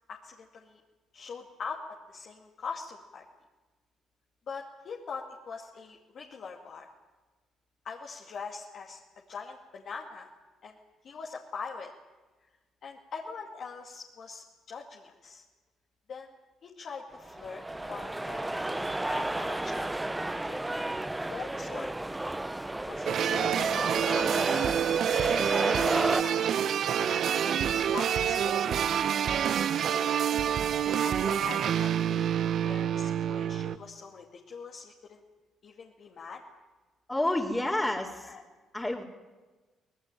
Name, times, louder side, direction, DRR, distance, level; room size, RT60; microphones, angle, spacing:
voice 1, 0.1-0.8 1.1-1.8 2.1-3.2 4.5-6.9 7.8-9.0 9.3-10.3 10.6-10.8 11.0-11.9 12.8-15.4 16.1-16.3 16.6-20.0 20.2-20.9 21.2-21.9 22.9-24.7 25.6-28.9 29.9-30.2 30.9-32.3 32.6-35.2 35.6-36.4 37.6-37.8 38.2-38.4, left 5 dB, 60° left, -1 dB, 2.4 m, -43 dB
sound 1, 17.2-26.2, right 1 dB, 15° right, 0.7 m, -32 dB
sound 2, 23.1-33.8, right 9 dB, 65° right, 0.8 m, -27 dB
voice 2, 37.1-38.3 38.7-39.0, left 1 dB, 15° left, -4 dB, 3.3 m, -29 dB
24.0 x 18.5 x 9.2 m, 1.3 s
supercardioid pair, 60°, 0 cm